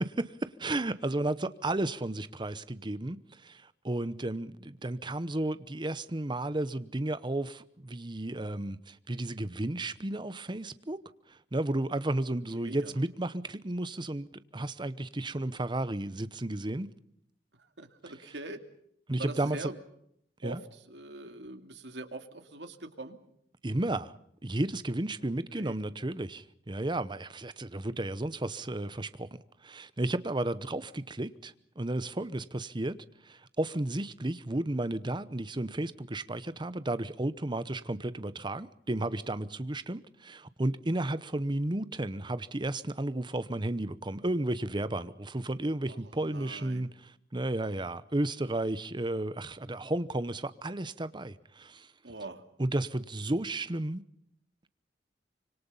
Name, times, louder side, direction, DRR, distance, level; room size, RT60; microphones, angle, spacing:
voice 1, 0.2-11.0 11.3-14.3 14.5-16.9 19.1-19.7 20.4-20.6 23.6-24.1 24.4-29.3 29.6-51.9 52.6-54.0, right 1 dB, 25° right, 0.9 m, -33 dB
voice 2, 12.6-13.0 17.8-18.6 19.2-19.8 20.4-23.2 25.2-25.8 45.9-46.9 52.0-52.4, right 2 dB, 80° right, 2.4 m, -43 dB
25.5 x 25.0 x 5.5 m
head